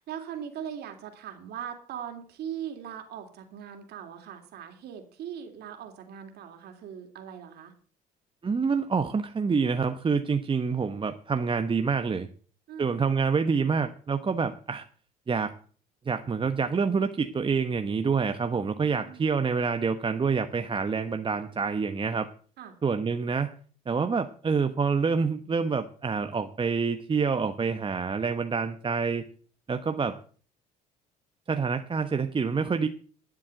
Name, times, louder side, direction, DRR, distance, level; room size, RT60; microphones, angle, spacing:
voice 1, 0.0-7.7 12.7-13.0 18.4-19.3 22.6-22.8, right 9 dB, 65° right, 5 dB, 3.1 m, -40 dB
voice 2, 8.4-12.3 12.8-14.8 15.3-15.5 16.1-22.3 22.8-23.5 23.9-29.3 29.7-30.2 31.5-32.9, right 5 dB, 30° right, 8 dB, 1.0 m, -27 dB
12.0 x 7.5 x 7.8 m, 0.44 s
supercardioid pair, 75°, 18 cm